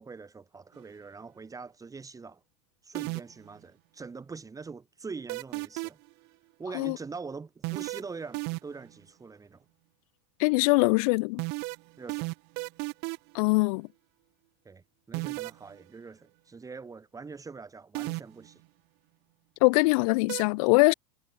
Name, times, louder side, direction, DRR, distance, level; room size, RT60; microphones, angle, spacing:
voice 1, 0.0-2.4 2.8-6.0 6.6-9.6 12.0-12.3 14.6-18.6, right 4 dB, 15° right, 3.0 m, -43 dB
sound 1, 2.9-3.5 5.3-6.1 7.6-8.9 11.4-13.4 15.1-15.6 17.9-18.5 20.3-20.4, right 32 dB, 55° right, 0.8 m, -33 dB
voice 2, 10.4-11.4 13.3-13.9 19.6-20.9, left 27 dB, 65° left, 0.6 m, -22 dB
hypercardioid pair, 105°, 20 cm